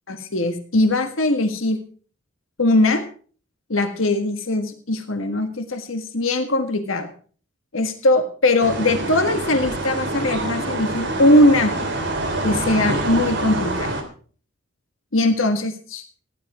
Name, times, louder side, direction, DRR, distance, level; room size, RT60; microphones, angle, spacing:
voice 1, 0.1-1.8 2.6-3.0 3.7-7.1 7.7-11.8 12.4-14.0 15.1-16.0, left 1 dB, 75° left, 6 dB, 1.6 m, -20 dB
sound 1, 8.6-14.0, right 2 dB, 55° right, 2.9 m, -26 dB
15.5 x 10.5 x 4.9 m, 0.43 s
head